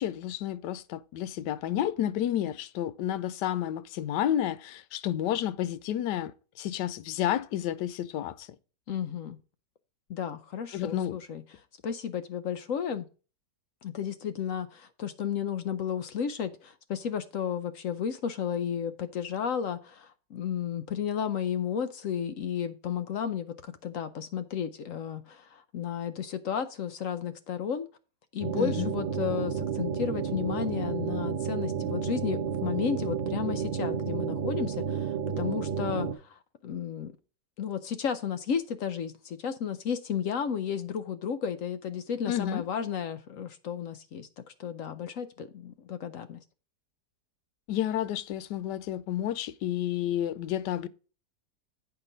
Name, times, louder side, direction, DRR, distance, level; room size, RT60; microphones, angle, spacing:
voice 1, 0.0-8.5 10.7-11.2 28.5-28.9 42.3-42.6 47.7-50.9, left 11 dB, 80° left, 1.2 m, -30 dB
voice 2, 8.9-9.4 10.1-11.4 11.8-13.1 13.8-27.9 28.3-37.1 37.6-46.4, left 8 dB, 65° left, 0.8 m, -33 dB
sound 1, 28.4-36.1, right 7 dB, 70° right, 0.5 m, -31 dB
8.2 x 5.7 x 5.0 m
omnidirectional pair, 1.9 m